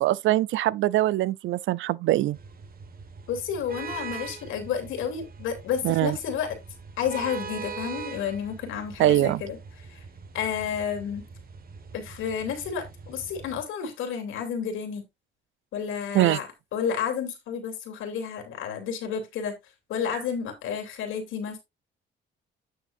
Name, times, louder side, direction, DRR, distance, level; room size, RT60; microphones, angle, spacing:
voice 1, 0.0-2.4 5.8-6.2 9.0-9.4 16.1-16.4, right 15 dB, 80° right, 0.5 m, -23 dB
sound 1, 2.3-13.6, right 5 dB, 50° right, 1.6 m, -42 dB
voice 2, 3.3-6.6 7.0-9.6 9.9-10.0 10.3-11.2 11.9-15.0 15.7-16.5 16.7-19.5 19.9-21.6, left 7 dB, 90° left, 2.8 m, -31 dB
9.6 x 6.5 x 2.6 m
cardioid pair, 90°, 20 cm